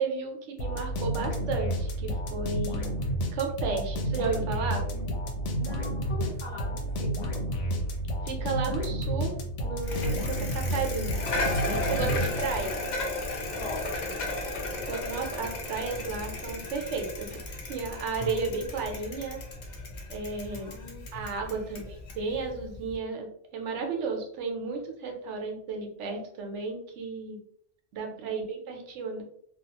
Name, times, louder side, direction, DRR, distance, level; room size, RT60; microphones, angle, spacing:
voice 1, 0.0-2.9 3.3-4.8 8.2-9.3 9.6-11.2 11.6-12.8 14.9-19.4 20.1-20.7 21.1-23.3 23.5-27.4 27.9-29.2, right 4 dB, 80° right, 3 dB, 1.0 m, -33 dB
sound 1, 0.6-12.8, equal, 90° left, 0.9 m, -31 dB
voice 2, 5.5-7.3 12.0-12.7 13.5-14.1 14.9-15.1 18.2-18.6 20.5-21.7 27.9-28.5, left 2 dB, 30° left, -6 dB, 1.1 m, -43 dB
Bicycle, 9.8-23.0, left 2 dB, 50° left, 0.6 m, -35 dB
2.4 x 2.3 x 2.8 m, 0.67 s
omnidirectional pair, 1.2 m